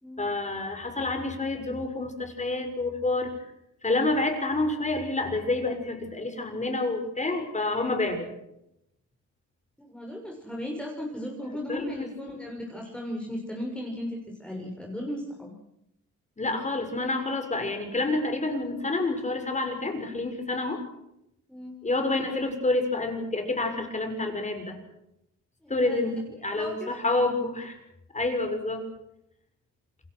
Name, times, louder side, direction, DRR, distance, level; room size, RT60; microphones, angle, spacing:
voice 1, 0.2-3.3 3.8-8.3 11.7-12.1 16.4-20.9 21.8-24.8 25.7-27.8 28.1-28.9, left 2 dB, 25° left, 6 dB, 6.5 m, -28 dB
voice 2, 9.8-15.5 21.5-21.7 25.6-26.0 26.4-26.9, left 1 dB, 5° left, -1 dB, 6.2 m, -36 dB
28.5 x 21.5 x 6.4 m, 0.83 s
cardioid pair, 90°, 30 cm